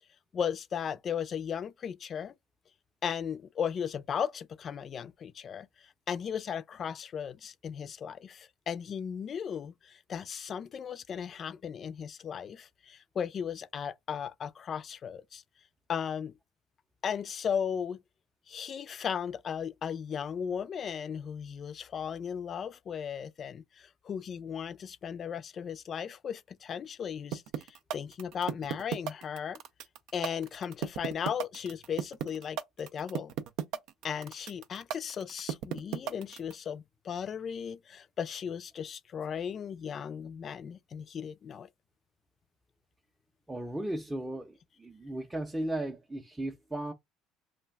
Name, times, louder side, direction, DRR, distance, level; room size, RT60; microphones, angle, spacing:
voice 1, 0.3-2.3 3.0-5.7 6.1-15.4 15.9-16.3 17.0-18.0 18.5-27.4 27.7-29.6 30.1-33.3 34.0-41.7, left 7 dB, 45° left, 0.3 m, -36 dB
sound 1, 27.3-36.5, right 9 dB, 70° right, 0.3 m, -34 dB
voice 2, 43.5-46.9, right 1 dB, 10° right, 0.6 m, -36 dB
2.4 x 2.1 x 3.4 m
supercardioid pair, 80°, 0 cm